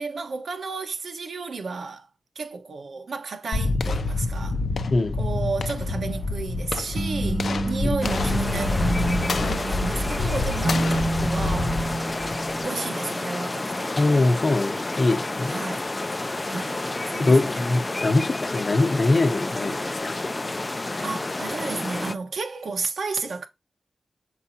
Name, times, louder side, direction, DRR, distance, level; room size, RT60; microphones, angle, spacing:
voice 1, 0.0-2.1 2.3-4.6 5.1-11.8 12.6-14.0 15.5-15.9 16.5-17.7 21.0-23.5, right 4 dB, 80° right, 1.2 m, -32 dB
sound 1, 3.5-12.7, left 3 dB, 80° left, 0.6 m, -27 dB
sound 2, 6.0-13.3, right 2 dB, 30° right, 0.7 m, -29 dB
sound 3, 8.0-22.1, left 2 dB, 25° left, 0.4 m, -30 dB
voice 2, 14.0-15.5 17.2-20.2 20.9-21.0, left 2 dB, 45° left, 0.9 m, -22 dB
7.2 x 4.7 x 2.8 m
wide cardioid pair, 140°, 0 cm